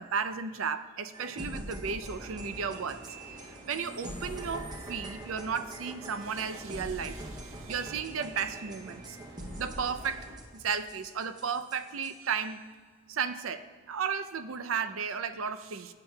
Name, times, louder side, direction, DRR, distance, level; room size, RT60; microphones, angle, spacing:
voice 1, 0.0-9.2 9.6-12.6 13.1-15.9, right 6 dB, 75° right, 11 dB, 0.5 m, -34 dB
sound 1, 1.1-12.5, right 1 dB, 20° right, 0.7 m, -44 dB
sound 2, 2.1-10.4, right 1 dB, 45° right, 3.1 m, -49 dB
15.0 x 8.8 x 2.3 m, 1.5 s
head